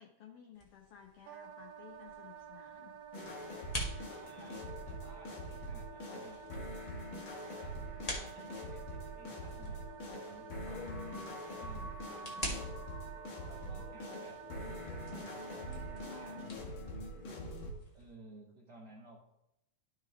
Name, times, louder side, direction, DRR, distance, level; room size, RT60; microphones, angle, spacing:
voice 1, 0.0-3.0 13.7-14.3, left 9 dB, 80° left, 3 dB, 1.3 m, -56 dB
sound 1, 0.5-18.1, equal, 30° left, 0.7 m, -48 dB
Wind instrument woodwind instrument, 1.2-16.5, right 9 dB, 85° right, 1.4 m, -51 dB
sound 2, 3.1-17.7, equal, 50° left, 1.8 m, -44 dB
voice 2, 4.1-6.5 7.6-12.4 13.4-17.1 17.9-19.2, right 2 dB, 70° right, -2 dB, 1.0 m, -57 dB
12.5 x 4.9 x 3.5 m, 0.83 s
omnidirectional pair, 3.4 m